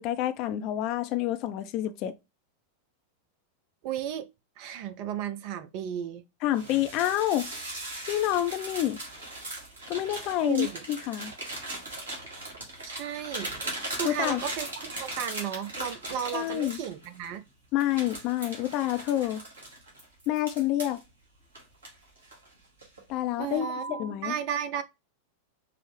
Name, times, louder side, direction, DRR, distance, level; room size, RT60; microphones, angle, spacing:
voice 1, 0.0-2.1 6.4-7.5 8.1-9.0 9.9-11.3 14.0-14.4 16.3-16.8 17.7-19.4 20.3-21.0 23.1-24.3, left 13 dB, 40° left, 0.4 m, -28 dB
voice 2, 3.8-4.3 4.6-6.2 10.4-10.8 12.8-13.5 13.9-17.4 23.4-24.8, right 9 dB, 45° right, 0.5 m, -34 dB
sound 1, 6.5-17.3 17.8-21.0 21.5-22.5 22.8-23.1 23.5-24.1, right 2 dB, 70° right, 1.9 m, -39 dB
4.9 x 2.1 x 3.1 m
figure-of-eight pair, 90°, 0 cm